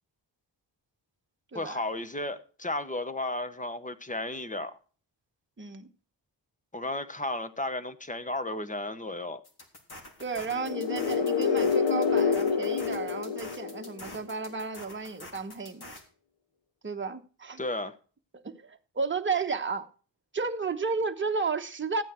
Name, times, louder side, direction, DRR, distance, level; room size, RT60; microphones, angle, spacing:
voice 1, 1.5-4.7 6.7-9.4 17.6-17.9, left 2 dB, 15° left, 1.1 m, -33 dB
voice 2, 5.6-5.9 10.2-15.9 16.8-17.6 18.4-19.9 20.3-22.0, right 4 dB, 25° right, 1.1 m, -33 dB
sound 1, 9.4-16.0, left 2 dB, 55° left, 3.3 m, -46 dB
sound 2, 10.5-14.3, left 6 dB, 85° left, 1.4 m, -27 dB
14.0 x 9.0 x 4.4 m
wide cardioid pair, 115°, 45 cm